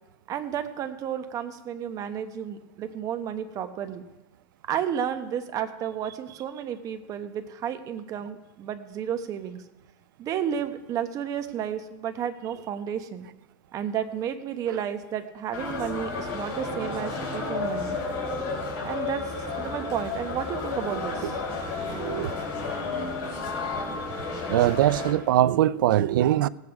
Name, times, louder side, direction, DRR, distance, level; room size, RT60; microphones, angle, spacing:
voice 1, 0.3-4.0 4.7-9.6 10.2-13.3 13.7-18.0 18.8-19.2 19.6-21.3, right 9 dB, 30° right, 1.0 m, -32 dB
sound 1, 15.5-25.1, left 4 dB, 50° left, 4.3 m, -32 dB
voice 2, 20.9-21.3 21.9-22.3 24.5-26.5, right 13 dB, 80° right, 0.4 m, -23 dB
17.5 x 8.3 x 4.8 m
supercardioid pair, 140°, 11 cm